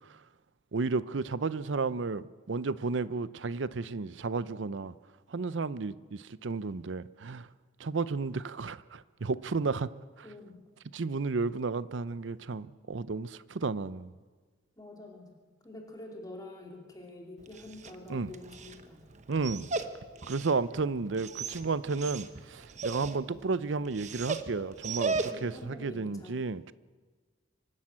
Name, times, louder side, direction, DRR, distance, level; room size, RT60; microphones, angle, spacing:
voice 1, 0.7-4.9 5.3-7.5 7.8-9.9 10.9-14.1 18.1-18.3 19.3-19.7 20.3-25.2 25.4-26.7, right 4 dB, 70° right, 0.6 m, -32 dB
voice 2, 10.2-10.6 14.8-19.1 25.2-26.4, left 2 dB, 20° left, 2.6 m, -47 dB
Dog, 17.4-25.7, right 4 dB, 40° right, 1.0 m, -38 dB
25.0 x 12.0 x 8.7 m
head